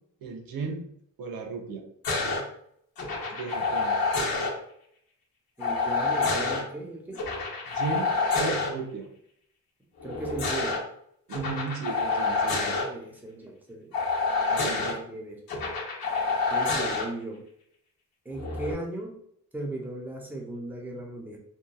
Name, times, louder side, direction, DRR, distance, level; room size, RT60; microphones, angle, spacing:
voice 1, 0.2-0.8 1.2-1.8 3.3-4.0 7.7-8.1 8.4-9.1 11.3-12.7 14.5-14.9, right 4 dB, 85° right, 3 dB, 0.6 m, -34 dB
sound 1, 2.0-2.4 3.0-4.5 5.6-6.6 7.1-8.7 10.0-10.8 11.3-12.8 13.9-14.9 15.5-17.0 18.3-18.7, left 3 dB, 90° left, 0.8 m, -27 dB
voice 2, 5.6-7.2 10.0-10.8 12.9-14.0 14.6-15.4 16.5-17.5 18.2-19.2 19.5-21.4, right 1 dB, 5° right, 0 dB, 0.5 m, -37 dB
2.8 x 2.2 x 2.2 m, 0.68 s
cardioid pair, 105°, 35 cm